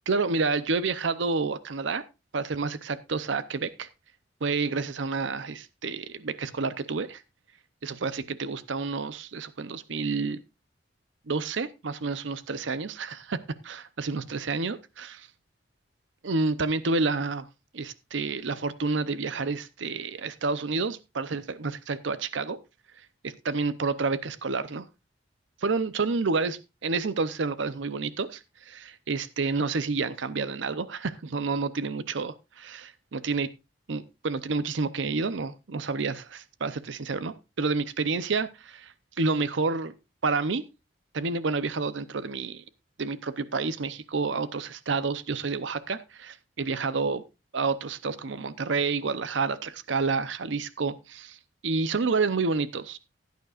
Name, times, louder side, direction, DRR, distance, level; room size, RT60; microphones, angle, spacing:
voice 1, 0.1-2.0 2.3-3.9 4.4-7.2 7.8-10.4 11.3-15.3 16.2-17.5 17.7-22.6 23.2-24.9 25.6-33.5 33.9-39.9 40.2-40.6 41.1-42.6 43.0-47.2 47.5-51.4 51.6-53.0, right 4 dB, 70° right, 14 dB, 0.6 m, -29 dB
16.0 x 9.3 x 2.4 m, 0.25 s
head